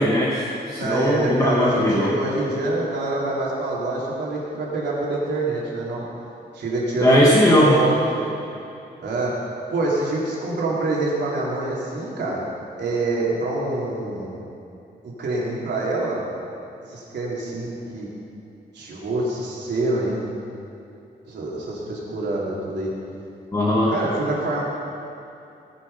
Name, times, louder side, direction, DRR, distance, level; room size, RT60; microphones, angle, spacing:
voice 1, 0.0-2.1 7.0-7.7 23.5-23.9, left 1 dB, 20° left, -4 dB, 1.2 m, -18 dB
voice 2, 0.8-6.1 6.5-7.2 7.5-8.3 9.0-9.4 9.7-12.4 12.8-14.4 15.0-16.2 16.9-18.1 18.7-20.2 21.3-22.9 23.9-24.6, right 2 dB, 80° right, -5 dB, 3.5 m, -25 dB
19.0 x 7.2 x 5.6 m, 2.8 s
wide cardioid pair, 175°, 18 cm